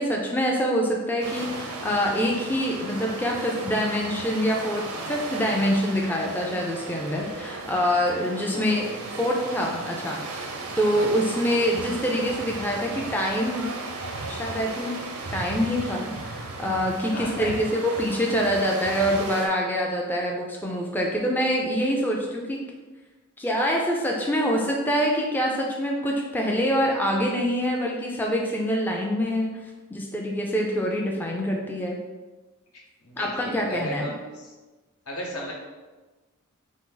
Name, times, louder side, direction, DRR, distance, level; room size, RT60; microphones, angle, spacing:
voice 1, 0.0-8.9 9.2-10.5 10.8-13.7 14.3-14.9 15.3-22.6 23.4-29.6 29.9-32.0 33.2-34.1, equal, 10° left, -1 dB, 0.4 m, -25 dB
sound 1, 1.2-19.5, right 3 dB, 85° right, 0.7 m, -36 dB
voice 2, 8.5-8.9 9.4-9.5 10.9-11.1 17.1-17.6 33.0-34.5 35.1-35.5, equal, 80° left, -2 dB, 1.1 m, -36 dB
3.8 x 2.7 x 3.8 m, 1.2 s
head